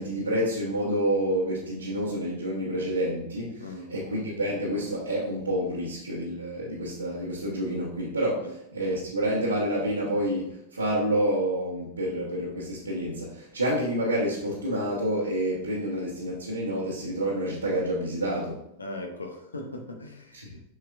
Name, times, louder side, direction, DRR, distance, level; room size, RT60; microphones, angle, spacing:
voice 1, 0.0-8.5 8.7-18.6 20.3-20.5, right 1 dB, 80° right, -7 dB, 1.2 m, -28 dB
voice 2, 3.6-3.9 8.4-8.5 18.8-20.7, left 2 dB, 75° left, 3 dB, 0.9 m, -39 dB
7.4 x 5.5 x 2.4 m, 0.79 s
figure-of-eight pair, 90°, 0 cm